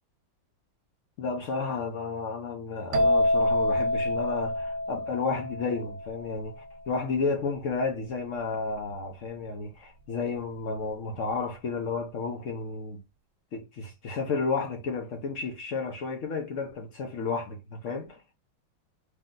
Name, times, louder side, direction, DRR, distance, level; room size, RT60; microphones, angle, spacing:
voice 1, 1.2-13.0 13.5-18.2, left 4 dB, 70° left, 0.7 m, -32 dB
sound 1, 2.9-6.6, left 1 dB, 60° right, 0.9 m, -27 dB
3.3 x 2.8 x 3.7 m
omnidirectional pair, 2.2 m